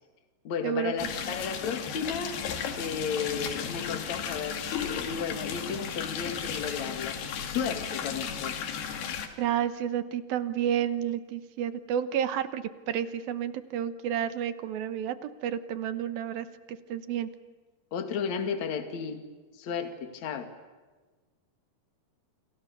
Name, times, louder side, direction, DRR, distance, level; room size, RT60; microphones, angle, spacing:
voice 1, 0.5-8.6 17.9-19.2 19.6-20.5, left 6 dB, 50° left, 8 dB, 3.3 m, -34 dB
sound 1, 1.0-9.3, left 7 dB, 75° left, 4.3 m, -34 dB
voice 2, 9.1-17.3, right 9 dB, 70° right, 12 dB, 2.9 m, -31 dB
29.5 x 27.5 x 6.8 m, 1.3 s
omnidirectional pair, 4.6 m